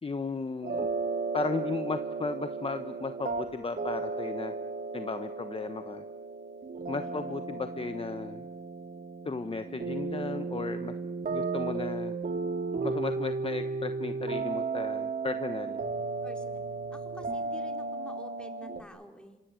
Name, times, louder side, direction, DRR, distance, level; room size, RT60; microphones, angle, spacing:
voice 1, 0.0-0.9 1.3-4.5 4.9-6.0 6.9-8.5 9.2-10.9 11.3-12.1 12.8-15.9, left 4 dB, 30° left, 9 dB, 1.2 m, -35 dB
sound 1, 0.6-18.8, right 4 dB, 55° right, 2.7 m, -34 dB
voice 2, 7.0-7.4 16.2-16.6 16.9-19.4, equal, 5° left, 3 dB, 4.3 m, -49 dB
27.5 x 25.0 x 7.8 m, 1.0 s
cardioid pair, 80°, 18 cm